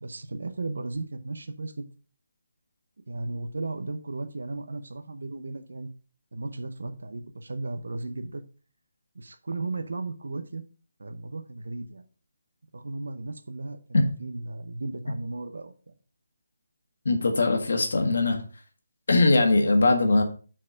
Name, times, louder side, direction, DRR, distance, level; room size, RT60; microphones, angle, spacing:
voice 1, 0.0-1.8 3.1-5.9 6.3-8.4 9.1-10.6 11.0-12.0 12.7-13.8 14.2-15.7, right 2 dB, 80° right, 8 dB, 0.8 m, -35 dB
voice 2, 17.0-18.4 19.1-20.2, left 2 dB, 65° left, 5 dB, 1.6 m, -21 dB
6.2 x 4.3 x 5.1 m, 0.38 s
hypercardioid pair, 180°, 0 cm